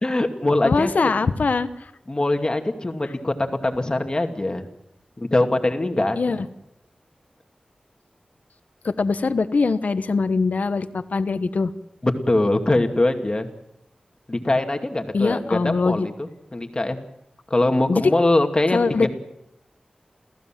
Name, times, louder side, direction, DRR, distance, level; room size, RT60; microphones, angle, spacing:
voice 1, 0.0-1.1 2.1-3.3 3.6-4.6 5.2-6.4 12.0-13.5 14.3-17.0 17.5-19.1, left 2 dB, 30° left, 5 dB, 2.4 m, -22 dB
voice 2, 0.6-1.9 6.1-6.5 8.8-11.7 15.1-16.1 17.9-18.0 18.7-19.1, left 4 dB, 75° left, 12 dB, 1.2 m, -22 dB
28.5 x 15.5 x 7.5 m, 0.83 s
wide cardioid pair, 75°, 3 cm